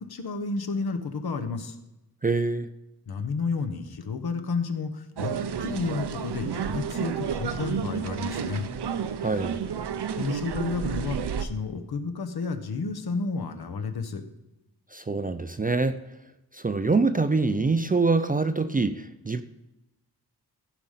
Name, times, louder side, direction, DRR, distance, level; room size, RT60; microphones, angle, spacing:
voice 1, 0.0-1.8 3.1-5.3 5.6-8.7 10.2-14.2, left 4 dB, 65° left, 7 dB, 1.2 m, -31 dB
voice 2, 2.2-2.7 9.2-9.6 14.9-16.0 16.5-19.4, right 3 dB, 25° right, 10 dB, 0.4 m, -25 dB
sound 1, 5.2-11.5, right 7 dB, 85° right, 0.7 m, -31 dB
14.5 x 5.1 x 5.6 m, 0.96 s
wide cardioid pair, 170°, 40 cm